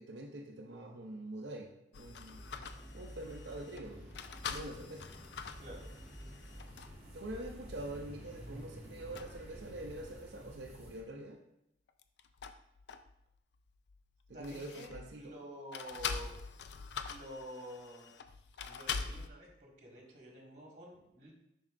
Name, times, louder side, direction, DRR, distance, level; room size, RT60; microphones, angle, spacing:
voice 1, 0.0-2.4 2.9-4.1 4.5-5.1 7.1-11.4 14.3-15.3, right 1 dB, 75° right, 1 dB, 0.6 m, -45 dB
sound 1, 1.9-7.1 7.7-7.8 8.4-8.8 9.1-9.3 11.9-13.4 13.7-15.2 15.7-19.3, left 6 dB, 70° left, 0.4 m, -44 dB
sound 2, 2.0-11.0, equal, 10° right, 1.6 m, -50 dB
voice 2, 14.3-16.4 17.1-18.1 18.6-21.3, equal, 40° right, -1 dB, 1.4 m, -49 dB
7.2 x 5.4 x 2.5 m, 0.80 s
head